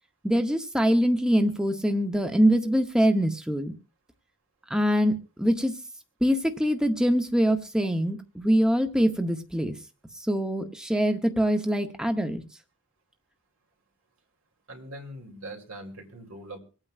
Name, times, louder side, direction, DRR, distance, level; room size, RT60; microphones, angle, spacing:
voice 1, 0.2-3.7 4.7-5.7 6.2-9.7 10.3-12.4, equal, 5° right, 6 dB, 0.7 m, -24 dB
voice 2, 14.7-16.6, right 1 dB, 80° right, 2 dB, 2.6 m, -41 dB
25.5 x 8.8 x 2.4 m, 0.34 s
head